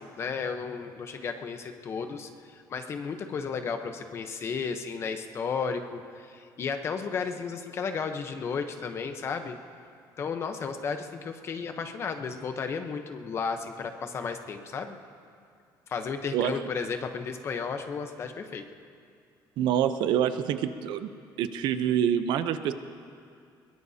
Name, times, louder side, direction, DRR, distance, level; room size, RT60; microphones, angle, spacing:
voice 1, 0.0-9.6 10.2-15.0 15.9-18.6, left 5 dB, 30° left, 6 dB, 0.9 m, -33 dB
voice 2, 19.6-21.1 21.4-22.7, right 9 dB, 65° right, 10 dB, 0.7 m, -26 dB
22.5 x 21.5 x 2.8 m, 2.3 s
cardioid pair, 175°, 8 cm